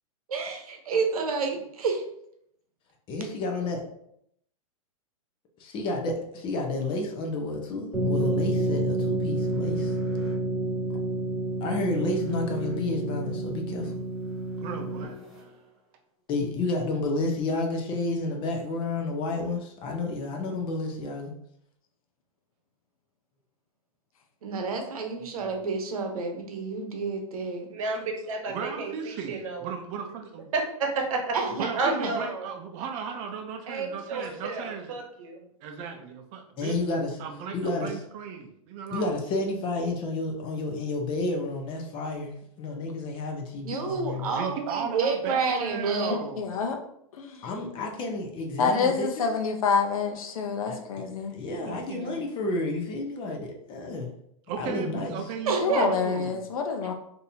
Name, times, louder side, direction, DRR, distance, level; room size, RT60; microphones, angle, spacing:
voice 1, 0.3-2.0 24.4-27.7 31.3-32.1 43.6-46.2 55.5-55.9, right 4 dB, 85° right, 4 dB, 0.8 m, -29 dB
voice 2, 3.1-3.8 5.6-9.9 11.6-13.9 16.3-21.3 34.2-34.3 36.6-37.1 37.5-37.9 38.9-44.5 47.4-49.3 50.7-50.8 51.3-54.1 54.6-55.2, left 2 dB, 25° left, 2 dB, 0.6 m, -30 dB
sound 1, 7.9-15.4, right 1 dB, ahead, 1.3 m, -29 dB
voice 3, 14.6-15.5 25.4-25.6 28.5-30.5 31.6-35.0 35.6-36.8 37.2-39.2 44.1-46.7 51.7-52.2 54.5-56.5, right 6 dB, 35° right, 4 dB, 0.6 m, -36 dB
voice 4, 27.7-29.7 30.5-31.4 31.8-32.5 33.7-35.4, right 3 dB, 65° right, 3 dB, 1.0 m, -31 dB
voice 5, 46.1-46.8 47.1-47.5 48.6-51.3 55.6-56.9, left 5 dB, 75° left, 4 dB, 0.7 m, -27 dB
3.9 x 2.8 x 2.7 m, 0.73 s
hypercardioid pair, 145°, 18 cm